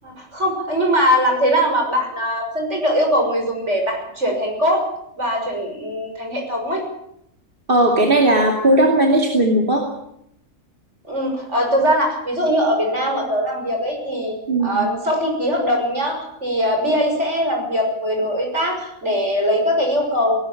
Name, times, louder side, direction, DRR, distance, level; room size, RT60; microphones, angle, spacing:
voice 1, 0.0-4.8 5.2-6.8 11.1-14.3 14.6-20.4, equal, 55° right, 2 dB, 6.7 m, -21 dB
voice 2, 7.7-9.8 14.5-14.9, right 1 dB, 40° right, 1 dB, 2.8 m, -16 dB
19.0 x 18.0 x 9.0 m, 0.76 s
omnidirectional pair, 1.4 m